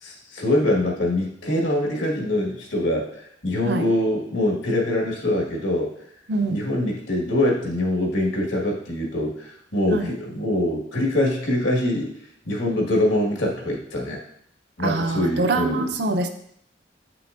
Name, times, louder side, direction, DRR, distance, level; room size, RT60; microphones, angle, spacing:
voice 1, 0.0-5.9 6.5-12.1 12.5-14.2 14.8-15.9, left 1 dB, 85° left, -2 dB, 1.6 m, -24 dB
voice 2, 14.8-16.3, right 2 dB, 65° right, 6 dB, 0.6 m, -24 dB
8.2 x 5.8 x 2.5 m, 0.70 s
head